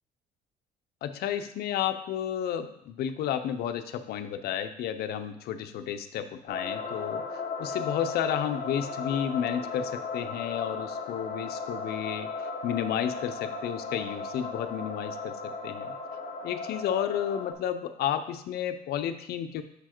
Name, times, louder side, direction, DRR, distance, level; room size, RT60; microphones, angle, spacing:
voice 1, 1.0-12.3 12.6-15.9 16.4-19.6, left 9 dB, 70° left, 9 dB, 0.6 m, -32 dB
sound 1, 6.5-17.5, left 4 dB, 45° left, 0.9 m, -36 dB
6.7 x 4.7 x 4.4 m, 0.76 s
cardioid pair, 110°, 17 cm